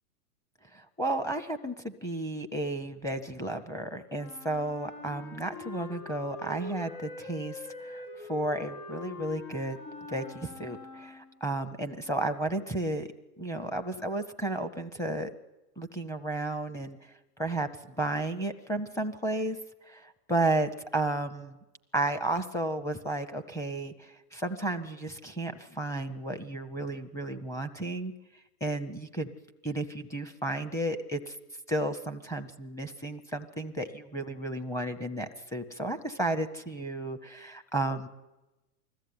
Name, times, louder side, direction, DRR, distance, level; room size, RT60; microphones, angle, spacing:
voice 1, 0.7-8.0 8.3-9.8 10.1-13.1 13.4-15.3 15.8-17.0 17.4-17.7 18.0-19.6 19.9-21.6 21.9-28.1 28.6-29.3 29.6-31.4 31.7-38.1, right 1 dB, 5° left, 6 dB, 0.8 m, -33 dB
Wind instrument woodwind instrument, 4.1-11.5, left 3 dB, 80° left, 6.8 m, -44 dB
20.5 x 14.0 x 9.5 m, 1.0 s
hypercardioid pair, 135°, 46 cm